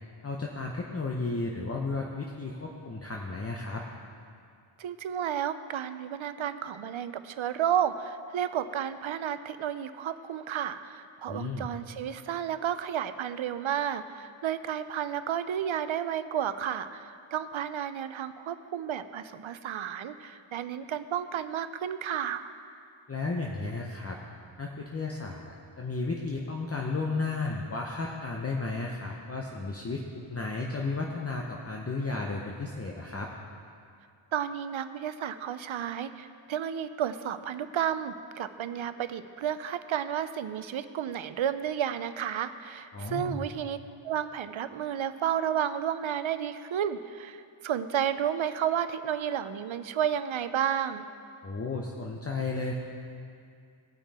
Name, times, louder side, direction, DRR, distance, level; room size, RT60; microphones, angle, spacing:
voice 1, 0.2-3.8 11.2-11.7 23.1-24.2 24.6-33.3 42.9-43.5 51.4-52.7, left 3 dB, 30° left, -1 dB, 0.8 m, -33 dB
voice 2, 4.8-22.5 34.3-43.8 44.0-51.1, right 9 dB, 70° right, 12 dB, 0.6 m, -32 dB
17.5 x 6.0 x 4.2 m, 2.3 s
wide cardioid pair, 85°, 49 cm